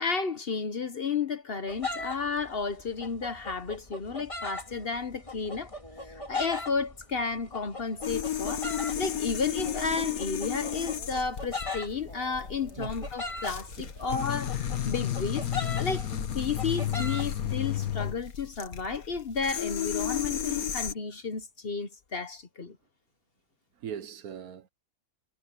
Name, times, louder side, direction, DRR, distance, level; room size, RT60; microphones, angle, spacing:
voice 1, 0.0-5.7 6.0-15.5 15.8-22.8, left 5 dB, 45° left, 1.0 m, -32 dB
sound 1, 1.7-18.1, left 3 dB, 20° left, 2.2 m, -40 dB
sound 2, 8.0-20.9, left 10 dB, 70° left, 1.7 m, -32 dB
voice 2, 12.8-13.1 13.8-13.9 15.9-16.0 20.3-20.5 23.8-24.7, right 9 dB, 75° right, 1.4 m, -40 dB
omnidirectional pair, 1.6 m